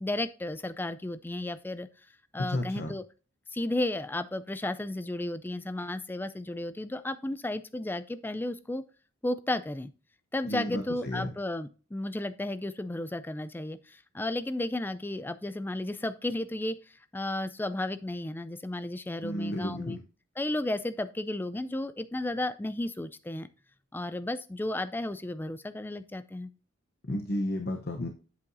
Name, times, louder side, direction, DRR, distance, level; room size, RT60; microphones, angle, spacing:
voice 1, 0.0-1.9 2.3-3.0 3.5-8.8 9.2-9.9 10.3-20.0 20.4-23.5 23.9-26.5, left 1 dB, 10° left, 12 dB, 0.3 m, -33 dB
voice 2, 2.4-3.0 10.4-11.3 19.2-20.0 27.1-28.1, left 1 dB, 50° left, 4 dB, 0.8 m, -32 dB
8.4 x 7.7 x 2.6 m, 0.36 s
head